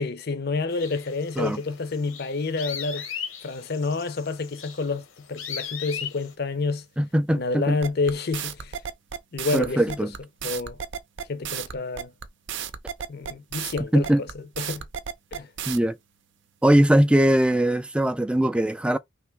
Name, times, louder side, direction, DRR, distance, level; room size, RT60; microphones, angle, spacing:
voice 1, 0.0-3.1 3.4-6.8 7.3-8.8 9.3-10.1 10.4-10.8 11.3-12.1 13.1-14.8 15.3-15.5, left 3 dB, 50° left, 0.6 m, -29 dB
sound 1, 0.7-6.3, left 8 dB, 80° left, 0.9 m, -38 dB
voice 2, 7.0-7.8 9.5-10.1 13.9-14.2 15.7-16.0 16.6-19.0, right 1 dB, 5° right, 0.3 m, -20 dB
sound 2, 7.8-15.8, right 8 dB, 60° right, 0.5 m, -33 dB
3.4 x 2.7 x 4.5 m
head